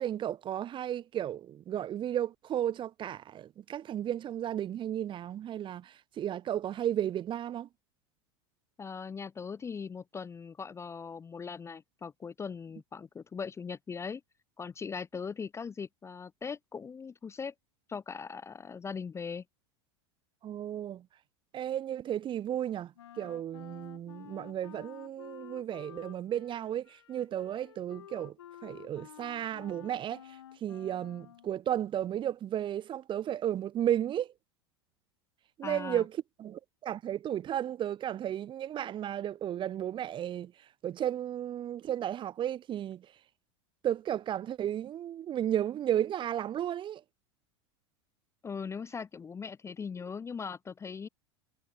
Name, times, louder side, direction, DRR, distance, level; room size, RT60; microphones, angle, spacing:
voice 1, 0.0-7.7 20.4-21.0 21.5-28.3 28.6-30.2 30.6-34.3 35.6-36.1 36.4-40.5 40.8-43.1 43.8-47.0, right 11 dB, 35° right, 1.2 m, -34 dB
voice 2, 8.8-14.2 14.6-17.5 17.9-19.4 35.6-36.0 48.4-51.1, left 5 dB, 20° left, 0.6 m, -40 dB
Wind instrument woodwind instrument, 23.0-31.6, left 11 dB, 80° left, 5.4 m, -51 dB
hypercardioid pair, 85°, 14 cm